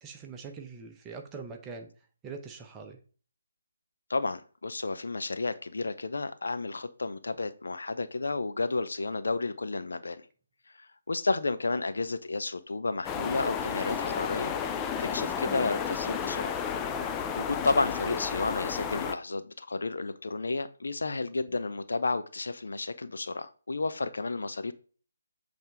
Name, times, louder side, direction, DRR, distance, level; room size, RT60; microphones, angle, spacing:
voice 1, 0.0-1.9 2.2-3.0, right 5 dB, 15° right, 4 dB, 0.9 m, -43 dB
voice 2, 4.1-10.2 10.7-14.5 15.0-16.6 17.4-24.7, left 3 dB, 60° left, 11 dB, 0.6 m, -31 dB
sound 1, 13.0-19.1, left 7 dB, 15° left, 0.4 m, -32 dB
7.8 x 3.6 x 4.8 m, 0.41 s
figure-of-eight pair, 145°, 0 cm